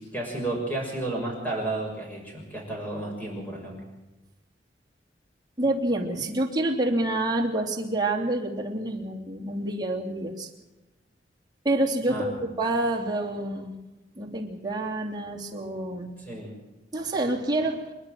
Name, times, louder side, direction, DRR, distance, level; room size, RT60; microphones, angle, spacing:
voice 1, 0.1-3.8 12.1-12.3 16.2-16.5, right 2 dB, 10° left, -1 dB, 6.4 m, -32 dB
voice 2, 5.6-10.5 11.6-13.7 14.2-16.1 16.9-17.9, right 1 dB, 25° right, -1 dB, 2.9 m, -27 dB
27.0 x 11.5 x 9.3 m, 1.1 s
head